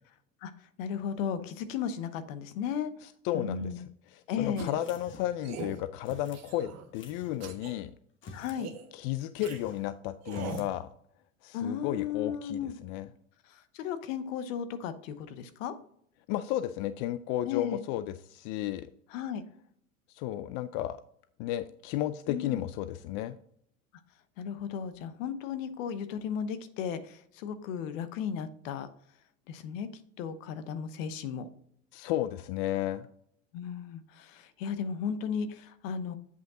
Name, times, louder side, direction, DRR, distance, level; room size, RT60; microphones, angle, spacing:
voice 1, 0.4-2.9 3.3-3.8 4.3-4.7 8.3-8.7 11.5-12.7 13.4-15.8 17.4-17.8 19.1-19.4 22.3-22.6 24.4-28.9 29.5-29.9 30.2-31.5 33.5-36.2, left 7 dB, 65° left, 12 dB, 1.0 m, -35 dB
voice 2, 3.2-3.7 4.1-7.9 8.9-10.9 11.4-13.1 16.3-18.9 20.1-21.0 21.4-23.4 31.9-33.1, left 13 dB, 50° left, 12 dB, 0.5 m, -33 dB
sound 1, 4.6-4.9 5.4-5.8 6.3-6.9 7.4-7.7 8.5-8.9 9.4-9.6 10.2-10.7, right 5 dB, 40° right, 1.4 m, -41 dB
sound 2, 4.8-5.5 6.0-6.5 6.9-7.4 8.1-8.6 8.9-9.0 9.4-9.9 10.2-10.7, left 3 dB, 30° left, 1.1 m, -49 dB
8.2 x 5.2 x 3.7 m, 0.67 s
hypercardioid pair, 105°, 41 cm